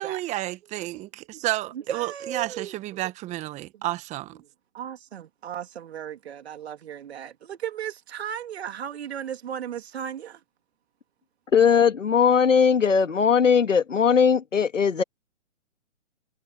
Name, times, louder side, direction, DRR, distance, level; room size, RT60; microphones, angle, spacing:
voice 1, 0.0-4.3, right 17 dB, 20° right, 1.4 m, -31 dB
voice 2, 1.7-3.0 3.7-3.9 4.7-10.4, right 9 dB, 55° right, 3.0 m, -36 dB
voice 3, 11.5-15.0, left 6 dB, 85° left, 1.8 m, -19 dB
hypercardioid pair, 135°, 37 cm